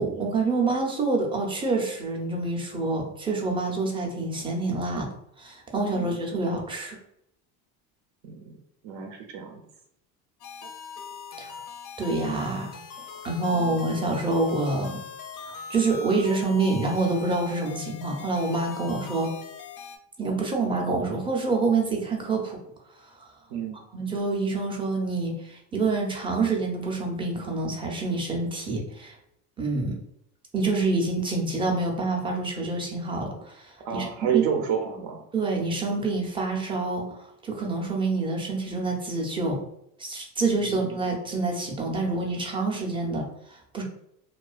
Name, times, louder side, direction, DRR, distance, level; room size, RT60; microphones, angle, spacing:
voice 1, 0.0-5.1 5.4-7.0 11.4-11.5 12.0-12.8 13.2-15.0 15.4-19.3 20.2-22.6 23.9-29.2 29.6-29.9 30.5-34.0 34.3-34.4 35.3-39.6 40.0-43.8, right 3 dB, 10° right, -1 dB, 0.4 m, -27 dB
voice 2, 8.8-9.6 13.1-13.2 13.5-13.8 23.5-23.8 33.8-35.2 40.5-41.0, right 8 dB, 65° right, 3 dB, 0.5 m, -30 dB
sound 1, 10.4-20.0, left 6 dB, 45° left, 0.5 m, -41 dB
2.3 x 2.3 x 2.3 m, 0.77 s
supercardioid pair, 105°, 47 cm